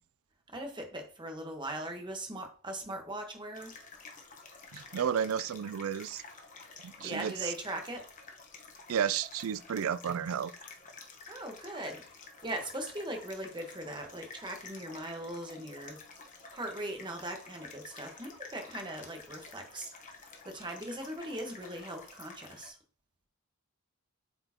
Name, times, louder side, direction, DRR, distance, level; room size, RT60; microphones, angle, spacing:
voice 1, 0.5-3.7 7.0-8.1 11.3-16.0 16.5-19.9 20.2-22.8, right 1 dB, 20° right, 1.3 m, -40 dB
sound 1, 3.5-22.7, left 4 dB, 35° left, 1.1 m, -51 dB
voice 2, 4.7-6.2 6.8-7.5 8.9-10.5, right 8 dB, 80° right, 0.4 m, -32 dB
7.8 x 4.5 x 2.9 m
head